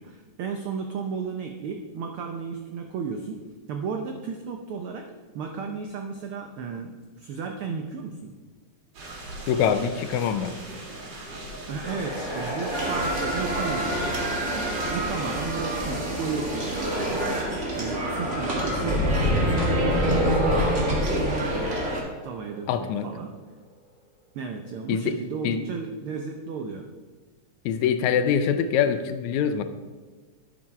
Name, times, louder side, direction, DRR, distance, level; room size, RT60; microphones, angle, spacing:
voice 1, 0.0-3.4 3.7-5.1 5.3-8.3 11.7-14.1 14.5-17.3 17.7-21.5 22.2-23.3 24.3-26.9, right 5 dB, 80° right, 3 dB, 1.2 m, -34 dB
sound 1, 8.9-15.4, right 2 dB, 55° right, 2.7 m, -40 dB
voice 2, 9.5-10.5 22.7-23.1 24.9-25.1 25.4-25.6 27.7-29.6, left 8 dB, 80° left, 10 dB, 2.0 m, -24 dB
sound 2, 11.8-15.6 16.7-17.5 17.7-22.6, equal, 10° right, 2.4 m, -28 dB
sound 3, 12.7-22.0, right 1 dB, 30° right, 1.5 m, -28 dB
11.5 x 6.0 x 4.8 m, 1.4 s
omnidirectional pair, 3.3 m